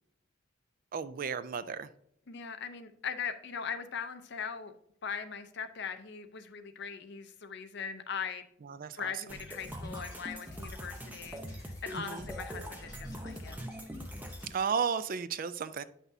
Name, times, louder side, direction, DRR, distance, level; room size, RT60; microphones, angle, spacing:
voice 1, 0.9-1.9 8.6-9.2 11.9-12.3 14.4-15.8, right 6 dB, 45° right, 14 dB, 0.3 m, -34 dB
voice 2, 2.3-4.7 5.0-8.4 8.9-13.6, left 6 dB, 60° left, 8 dB, 0.6 m, -40 dB
sound 1, 9.3-14.5, equal, 10° right, 0.7 m, -42 dB
sound 2, 9.6-14.7, left 2 dB, 20° left, 2.1 m, -58 dB
9.2 x 5.9 x 2.7 m, 0.73 s
head